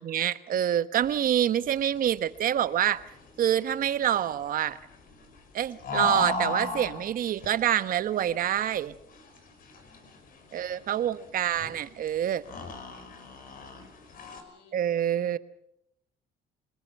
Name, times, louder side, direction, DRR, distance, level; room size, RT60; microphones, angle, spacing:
voice 1, 0.0-3.0 3.4-4.8 5.5-8.9 10.5-12.4 14.7-15.4, right 10 dB, 55° right, 13 dB, 1.2 m, -26 dB
sound 1, 1.0-14.4, left 3 dB, 55° left, 5.3 m, -38 dB
voice 2, 9.8-11.2 13.9-14.8, left 4 dB, 90° left, 8 dB, 5.8 m, -64 dB
28.5 x 20.0 x 5.5 m, 0.74 s
cardioid pair, 110°, 17 cm